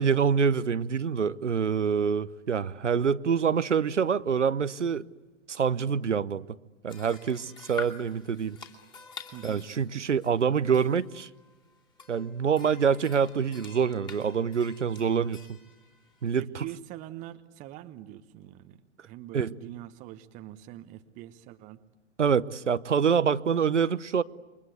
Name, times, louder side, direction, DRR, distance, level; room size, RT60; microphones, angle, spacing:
voice 1, 0.0-5.0 5.5-6.5 6.8-8.6 9.4-11.3 12.1-15.4 16.2-16.6 19.3-19.5 22.2-24.2, right 6 dB, 70° right, 0.9 m, -26 dB
sound 1, 6.9-16.3, left 5 dB, 10° left, 2.7 m, -47 dB
voice 2, 9.3-9.7 16.4-21.8, right 14 dB, 20° right, 0.9 m, -44 dB
28.5 x 24.0 x 8.2 m
figure-of-eight pair, 110°, 37 cm